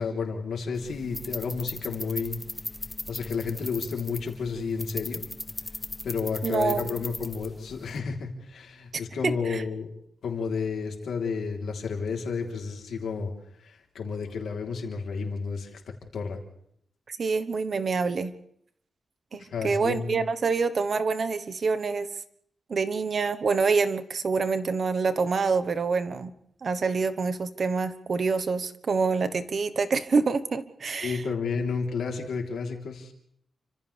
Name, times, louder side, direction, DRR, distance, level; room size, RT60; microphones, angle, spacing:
voice 1, 0.0-2.4 3.1-5.2 6.0-9.9 10.2-13.3 13.6-15.8 16.1-16.4 19.4-20.2 31.0-33.1, left 5 dB, 90° left, 2 dB, 3.6 m, -31 dB
sound 1, 0.7-8.0, left 2 dB, 15° left, 0.9 m, -38 dB
voice 2, 6.4-7.0 9.2-9.6 17.1-18.3 19.3-22.1 22.7-26.3 26.6-31.2, right 4 dB, 45° right, 11 dB, 1.2 m, -26 dB
29.5 x 26.0 x 3.4 m, 0.69 s
wide cardioid pair, 165°, 0 cm